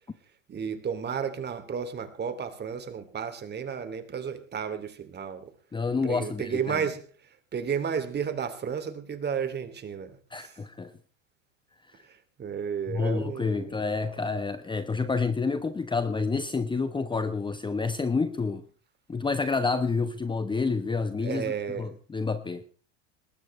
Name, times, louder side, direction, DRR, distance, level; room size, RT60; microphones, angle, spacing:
voice 1, 0.5-5.5 6.0-7.1 7.5-10.6 12.0-13.8 21.2-21.9, right 7 dB, 25° right, 2.8 m, -33 dB
voice 2, 5.7-6.8 10.3-10.9 12.9-18.6 19.1-21.5 21.8-22.6, left 4 dB, 10° left, 1.1 m, -28 dB
20.0 x 17.5 x 3.3 m
hypercardioid pair, 105°, 38 cm